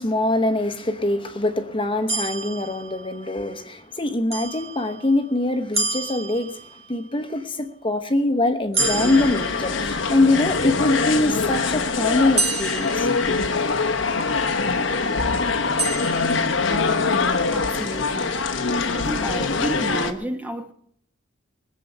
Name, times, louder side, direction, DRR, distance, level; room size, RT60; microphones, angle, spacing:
voice 1, 0.0-13.1, left 2 dB, 25° left, 1.0 m, -23 dB
sound 1, 2.1-3.4 4.3-5.2 5.7-7.0 8.7-10.2 12.4-13.9 15.8-16.9, right 3 dB, 35° right, 1.9 m, -29 dB
sound 2, 8.8-20.1, left 4 dB, 85° left, 1.1 m, -23 dB
voice 2, 17.5-18.4 18.9-20.7, right 1 dB, 10° right, 1.0 m, -31 dB
20.0 x 7.7 x 6.8 m
head